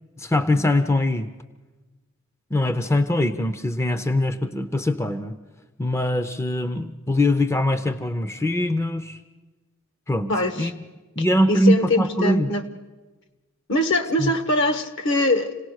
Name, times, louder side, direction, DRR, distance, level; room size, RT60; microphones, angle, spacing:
voice 1, 0.2-1.3 2.5-5.3 5.8-9.2 10.1-10.3 10.6-10.7 11.2-12.5 14.2-14.3, left 1 dB, 15° left, 9 dB, 0.6 m, -22 dB
voice 2, 10.3-10.7 11.5-12.7 13.7-15.7, left 1 dB, 60° left, 8 dB, 1.4 m, -22 dB
27.0 x 17.5 x 6.5 m, 1.2 s
head